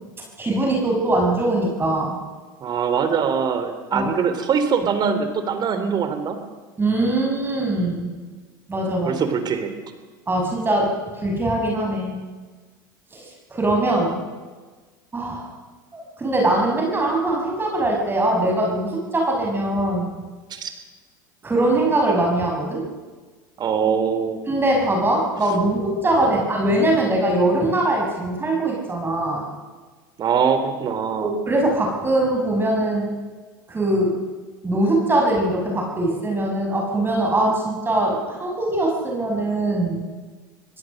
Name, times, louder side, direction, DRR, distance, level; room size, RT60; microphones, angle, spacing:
voice 1, 0.4-2.2 3.9-4.1 6.8-8.1 8.7-9.2 10.3-10.9 11.2-12.2 13.1-13.2 13.5-14.2 15.1-15.5 15.9-20.2 21.4-22.8 24.5-29.4 31.2-33.1 33.7-34.2 34.6-40.0, right 1 dB, 20° right, 0 dB, 6.0 m, -22 dB
voice 2, 2.6-6.4 9.0-9.7 20.5-20.7 23.6-24.4 26.2-26.4 30.2-31.3, right 6 dB, 40° right, 9 dB, 3.4 m, -22 dB
25.5 x 17.5 x 6.6 m, 1.4 s
hypercardioid pair, 80°, 11 cm